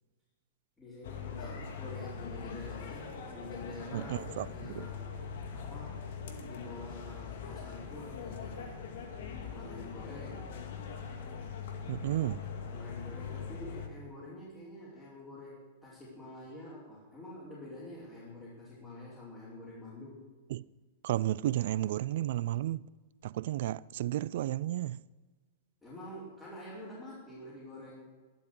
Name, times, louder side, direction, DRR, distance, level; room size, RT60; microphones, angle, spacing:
voice 1, 0.8-6.1 6.4-8.7 9.4-10.5 12.6-20.2 25.8-28.1, left 1 dB, 15° left, 4.8 m, -47 dB
sound 1, 1.0-13.9, left 6 dB, 60° left, 2.1 m, -42 dB
voice 2, 3.9-4.9 11.9-12.4 20.5-20.6 21.0-22.8 23.2-25.0, right 14 dB, 60° right, 0.3 m, -32 dB
12.0 x 12.0 x 6.4 m
hypercardioid pair, 105°, 0 cm